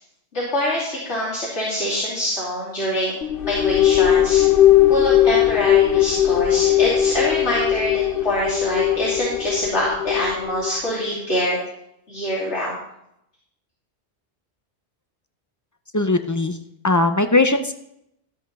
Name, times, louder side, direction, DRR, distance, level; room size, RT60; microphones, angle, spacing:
voice 1, 0.3-3.2 3.4-4.4 4.9-11.7 12.1-12.8, equal, 80° left, -8 dB, 3.2 m, -24 dB
sound 1, 3.2-10.8, left 12 dB, 60° left, 0.9 m, -18 dB
voice 2, 15.9-16.6 16.8-17.7, left 2 dB, 25° left, 9 dB, 0.4 m, -19 dB
14.0 x 7.8 x 4.1 m, 0.79 s
omnidirectional pair, 1.1 m